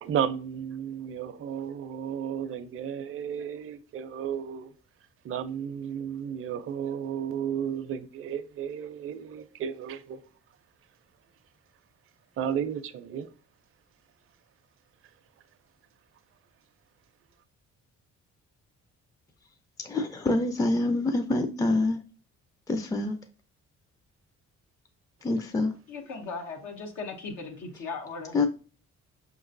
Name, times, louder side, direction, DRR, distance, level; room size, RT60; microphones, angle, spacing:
voice 1, 0.0-4.7 5.2-10.2 12.4-13.3, right 8 dB, 45° right, 0.5 m, -33 dB
voice 2, 19.8-22.0 22.7-23.2 25.2-25.7 28.3-28.5, left 2 dB, 10° left, 0.4 m, -26 dB
voice 3, 25.9-28.3, left 4 dB, 85° left, 1.0 m, -37 dB
5.7 x 3.0 x 2.5 m
cardioid pair, 90°, 30 cm